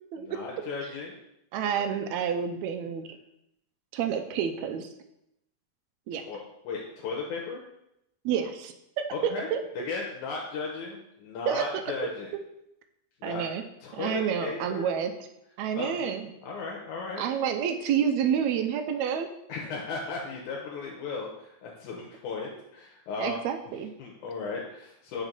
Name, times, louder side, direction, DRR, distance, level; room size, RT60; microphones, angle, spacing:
voice 1, 0.2-1.2 6.1-6.4 6.6-7.6 9.1-9.5 9.9-12.3 13.2-13.4 13.8-14.9 15.8-16.1 16.4-17.2 19.5-23.4 24.0-25.2, left 4 dB, 85° left, -2 dB, 2.3 m, -36 dB
voice 2, 1.5-3.2 3.9-4.9 6.1-6.2 8.3-9.6 11.5-11.7 13.2-13.6 13.9-15.1 15.6-16.3 17.2-19.3 23.2-23.9, right 8 dB, 80° right, 7 dB, 1.8 m, -29 dB
6.0 x 4.1 x 5.2 m, 0.82 s
omnidirectional pair, 3.3 m